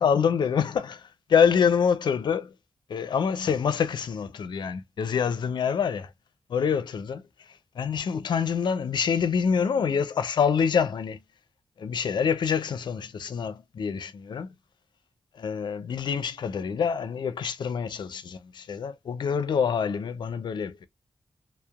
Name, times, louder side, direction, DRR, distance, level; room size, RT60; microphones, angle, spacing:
voice 1, 0.0-2.5 2.9-6.1 6.5-11.2 11.8-14.5 15.3-20.9, left 7 dB, 75° left, 0.5 m, -26 dB
2.7 x 2.0 x 2.3 m
cardioid pair, 50°, 8 cm